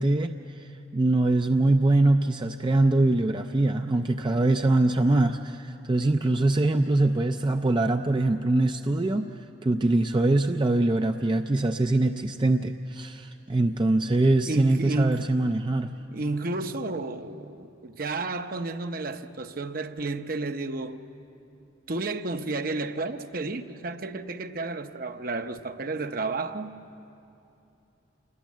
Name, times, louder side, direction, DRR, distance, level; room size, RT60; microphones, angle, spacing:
voice 1, 0.0-9.3 9.6-15.9, right 2 dB, 25° right, 0.4 m, -23 dB
voice 2, 14.5-15.4 16.1-21.0 21.9-26.7, right 2 dB, 50° right, 0.8 m, -31 dB
27.5 x 21.0 x 7.4 m
head